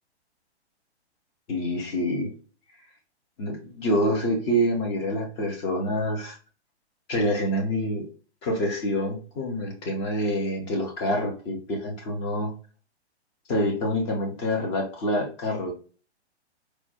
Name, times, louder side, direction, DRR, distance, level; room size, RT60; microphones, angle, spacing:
voice 1, 1.5-2.3 3.4-6.4 7.1-8.0 8.4-12.5 13.5-15.7, equal, 10° left, 1 dB, 0.4 m, -26 dB
4.3 x 2.1 x 2.7 m, 0.37 s
figure-of-eight pair, 120°, 34 cm